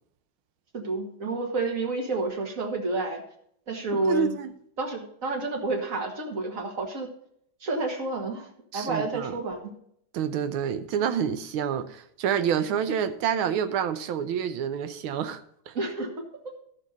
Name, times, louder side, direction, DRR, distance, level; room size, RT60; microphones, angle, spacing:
voice 1, 0.7-3.2 3.7-4.4 4.8-7.1 7.6-9.7 15.7-16.1, right 2 dB, 45° right, 2.0 m, -29 dB
voice 2, 4.1-4.5 8.7-9.3 10.1-15.7, right 8 dB, 90° right, 1.6 m, -28 dB
13.0 x 6.8 x 4.0 m
omnidirectional pair, 2.2 m